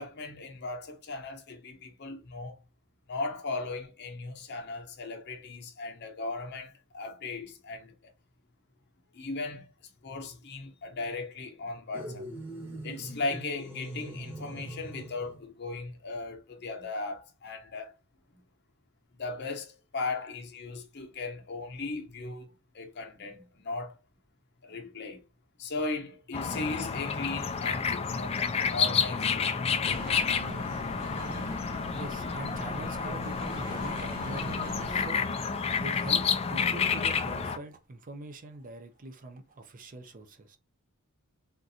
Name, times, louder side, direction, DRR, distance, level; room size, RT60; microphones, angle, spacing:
voice 1, 0.0-2.6 3.1-8.1 9.1-9.7 10.0-12.3 12.8-17.9 18.3-18.4 19.2-24.0 24.6-25.2 25.6-28.4 28.7-29.6, left 3 dB, 50° left, 0.8 m, -37 dB
sound 1, 11.9-15.4, right 1 dB, 10° right, 0.9 m, -41 dB
sound 2, 26.3-37.6, left 6 dB, 30° left, 0.3 m, -30 dB
sound 3, 29.8-35.1, right 2 dB, 85° right, 0.8 m, -42 dB
voice 2, 31.9-35.2 35.8-40.6, right 2 dB, 40° right, 0.5 m, -43 dB
3.6 x 2.5 x 2.7 m
head